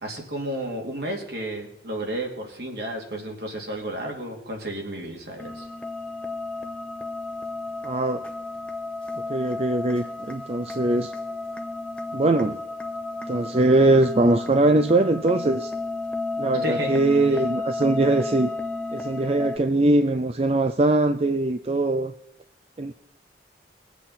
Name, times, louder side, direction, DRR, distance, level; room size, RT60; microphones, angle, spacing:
voice 1, 0.0-5.7 16.5-17.0 17.3-17.4, right 1 dB, 60° right, 0 dB, 2.9 m, -32 dB
sound 1, 5.4-19.6, left 2 dB, 5° left, 0.8 m, -33 dB
voice 2, 7.8-8.2 9.1-11.1 12.1-12.6 13.3-15.7 16.4-18.5 18.9-22.1 22.8-22.9, right 2 dB, 35° right, 9 dB, 0.5 m, -21 dB
20.5 x 8.2 x 4.2 m, 0.81 s
head